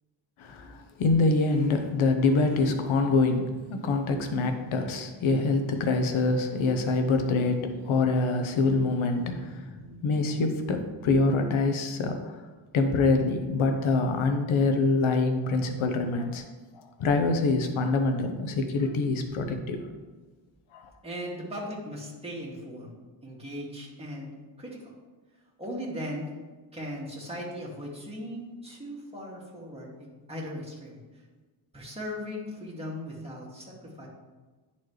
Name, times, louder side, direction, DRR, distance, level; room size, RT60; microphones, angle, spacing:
voice 1, 0.4-12.4 12.7-16.4 17.0-19.8 20.7-20.9, left 3 dB, 75° left, 6 dB, 1.0 m, -25 dB
voice 2, 21.0-22.9 23.2-24.3 24.6-24.9 25.6-26.3 26.7-31.0 31.7-34.1, equal, 10° right, -4 dB, 2.3 m, -38 dB
10.5 x 4.3 x 3.2 m, 1.3 s
cardioid pair, 90°, 48 cm